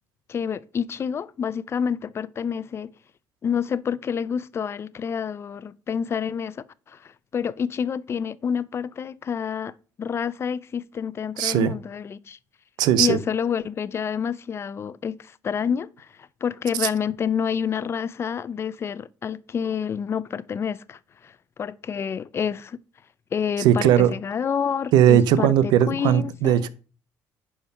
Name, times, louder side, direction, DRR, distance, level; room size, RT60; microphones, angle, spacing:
voice 1, 0.3-2.9 3.4-9.7 10.0-12.4 13.0-21.3 21.6-22.8 23.3-26.7, left 7 dB, 35° left, 0.5 m, -28 dB
voice 2, 11.4-11.7 12.8-13.2 16.8-16.9 23.6-24.1 24.9-26.7, right 10 dB, 85° right, 0.8 m, -18 dB
10.5 x 4.6 x 5.4 m
cardioid pair, 110°, 7 cm